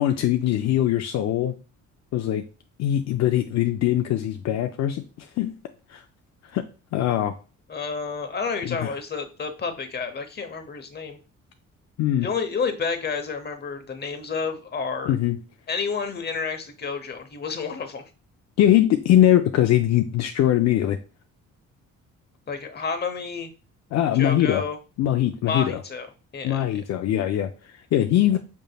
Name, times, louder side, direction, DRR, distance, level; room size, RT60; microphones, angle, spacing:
voice 1, 0.0-1.5 2.1-2.4 2.8-5.5 5.9-6.0 6.4-6.6 6.9-7.3 8.6-8.9 12.0-12.3 15.1-15.4 18.6-21.0 23.9-24.6 25.0-25.8 26.4-28.4, left 12 dB, 65° left, 0.4 m, -22 dB
voice 2, 7.7-11.2 12.2-15.1 15.7-18.0 22.5-23.5 24.1-24.8 25.4-26.1 26.3-26.8, left 5 dB, 35° left, 0.8 m, -30 dB
5.3 x 3.3 x 2.2 m
cardioid pair, 90°, 30 cm